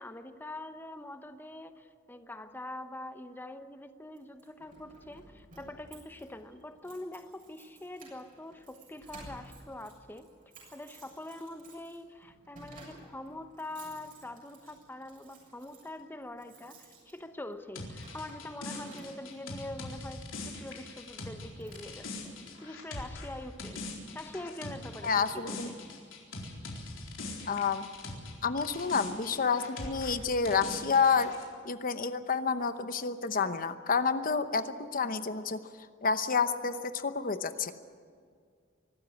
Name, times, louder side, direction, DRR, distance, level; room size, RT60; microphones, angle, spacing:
voice 1, 0.0-10.3 10.7-23.9 24.1-25.8, left 1 dB, 10° left, 8 dB, 0.8 m, -44 dB
Keys jangling, 4.2-19.5 20.3-20.5 21.0-21.1 21.4-22.3, right 2 dB, 45° right, 7.3 m, -55 dB
sound 1, 17.7-28.3 28.6-31.4, left 2 dB, 90° left, 4.2 m, -42 dB
voice 2, 25.0-25.7 27.5-27.9 28.4-31.3 31.6-35.6 36.0-37.7, left 5 dB, 45° left, 10 dB, 0.9 m, -29 dB
24.0 x 13.0 x 9.7 m, 2.1 s
head